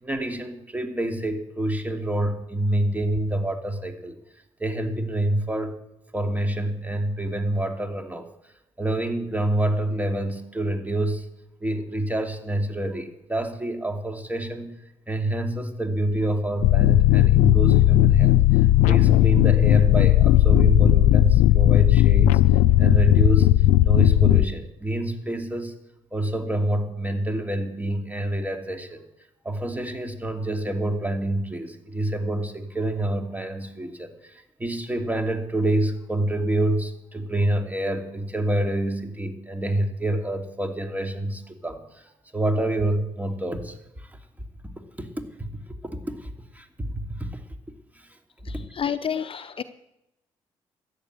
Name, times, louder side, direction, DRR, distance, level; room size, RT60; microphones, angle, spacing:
voice 1, 0.0-4.2 4.6-5.8 6.1-8.3 8.8-11.2 11.6-14.7 15.1-18.4 18.9-22.4 22.8-23.6 23.9-25.7 26.1-29.0 29.4-34.3 34.6-42.0 42.3-44.1 45.0-45.1 45.4-45.5 45.9-46.2 46.5-46.9 47.2-47.3, right 1 dB, 15° right, 4 dB, 2.6 m, -27 dB
sound 1, 16.6-24.5, left 14 dB, 80° left, 0.4 m, -16 dB
voice 2, 48.7-49.6, left 8 dB, 45° left, 13 dB, 0.7 m, -28 dB
13.5 x 9.2 x 8.0 m, 0.87 s
hypercardioid pair, 45°, 13 cm